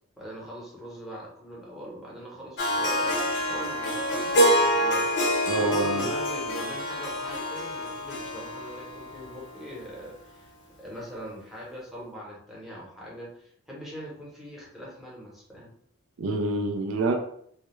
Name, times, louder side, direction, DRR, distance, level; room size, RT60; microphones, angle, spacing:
voice 1, 0.2-10.5 10.8-15.7, equal, ahead, -6 dB, 0.8 m, -42 dB
Harp, 2.6-9.7, equal, 55° left, 0.5 m, -26 dB
voice 2, 5.5-6.1 16.2-17.2, right 2 dB, 80° right, 4 dB, 0.4 m, -26 dB
2.3 x 2.1 x 2.9 m, 0.66 s
head